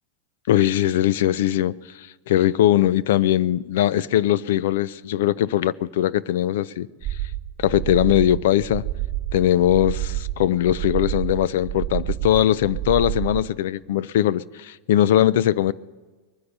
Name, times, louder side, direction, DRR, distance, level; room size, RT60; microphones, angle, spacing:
voice 1, 0.5-6.9 7.6-8.8 9.3-15.7, left 12 dB, 65° left, 0.5 m, -20 dB
sound 1, 7.0-13.5, right 14 dB, 25° right, 0.9 m, -29 dB
21.5 x 9.8 x 6.7 m
supercardioid pair, 170°, 0 cm